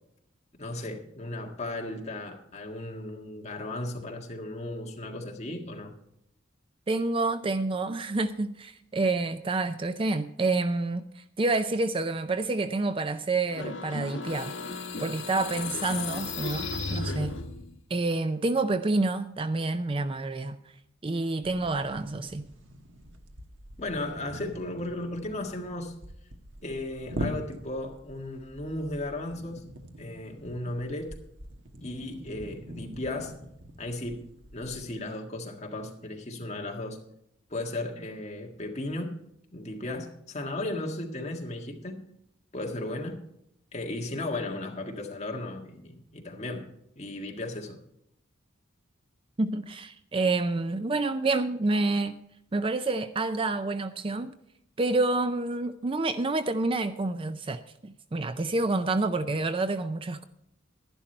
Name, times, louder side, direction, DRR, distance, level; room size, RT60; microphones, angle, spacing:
voice 1, 0.6-5.9 23.8-26.0 26.6-29.6 30.0-31.2 31.8-33.4 33.8-37.0 37.5-39.2 39.5-42.1 42.5-43.2 43.7-46.7 46.9-47.8, left 2 dB, 35° left, 1.7 m, -35 dB
voice 2, 6.9-14.6 15.0-17.4 17.9-20.6 21.0-22.5 49.4-52.2 52.5-54.4 54.8-60.2, right 3 dB, 25° right, 0.4 m, -28 dB
sound 1, 13.5-17.7, left 3 dB, 65° left, 1.9 m, -35 dB
sound 2, 21.4-34.9, right 1 dB, 70° right, 1.3 m, -43 dB
11.5 x 11.5 x 4.4 m
head